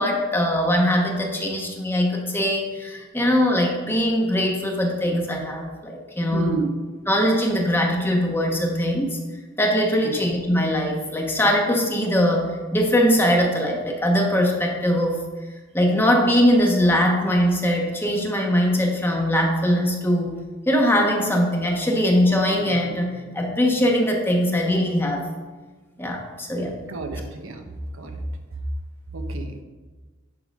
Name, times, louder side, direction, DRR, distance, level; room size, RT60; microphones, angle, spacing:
voice 1, 0.0-6.5 7.1-9.2 9.6-15.2 15.7-20.3 20.7-25.3 26.0-26.7, equal, 10° left, 1 dB, 1.0 m, -21 dB
voice 2, 6.3-6.7 10.0-10.2 26.9-27.7 27.9-28.2 29.1-29.6, right 3 dB, 80° right, 5 dB, 0.9 m, -29 dB
10.5 x 3.8 x 5.2 m, 1.3 s
head